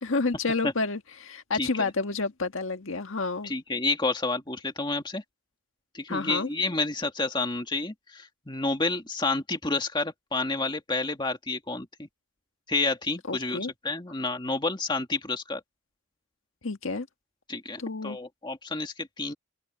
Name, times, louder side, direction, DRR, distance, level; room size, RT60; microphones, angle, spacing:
voice 1, 0.0-3.5 6.1-6.5 13.3-13.7 16.6-17.1 17.8-18.2, left 3 dB, 75° left, 1.6 m, -29 dB
voice 2, 1.5-1.9 3.4-5.2 5.9-12.1 12.7-15.6 17.5-19.3, left 3 dB, 20° left, 2.0 m, -30 dB
head